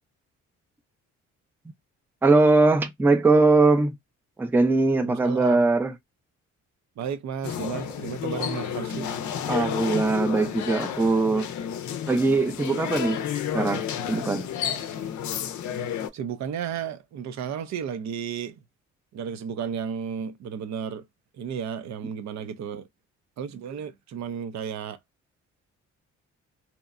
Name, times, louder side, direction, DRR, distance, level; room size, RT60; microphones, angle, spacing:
voice 1, 2.2-3.9 4.4-5.9 9.5-11.5 12.1-13.2 13.5-14.5, right 3 dB, 5° right, 0.4 m, -21 dB
voice 2, 5.0-5.7 7.0-9.1 16.1-18.6 19.1-21.1 21.3-22.9 23.4-25.0, right 7 dB, 65° right, 0.5 m, -33 dB
sound 1, 7.4-16.1, left 9 dB, 70° left, 0.5 m, -31 dB
2.8 x 2.1 x 2.4 m
cardioid pair, 90°, 30 cm